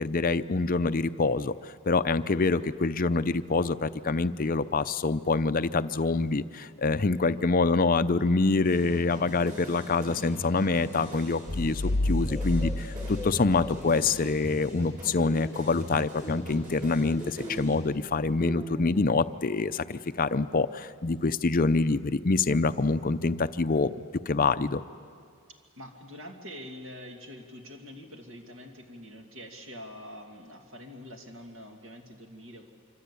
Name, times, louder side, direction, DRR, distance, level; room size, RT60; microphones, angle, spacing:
voice 1, 0.0-23.9 24.3-24.8, left 3 dB, 40° left, 12 dB, 0.6 m, -26 dB
sound 1, 8.6-17.8, equal, 40° right, 6.2 m, -41 dB
sound 2, 11.5-14.4, left 1 dB, 85° left, 0.9 m, -30 dB
sound 3, 12.2-14.5 15.0-15.6 16.1-19.2, equal, 5° left, 1.1 m, -42 dB
voice 2, 25.8-32.7, equal, 65° right, 2 dB, 2.3 m, -45 dB
26.0 x 25.5 x 8.4 m, 2.2 s
head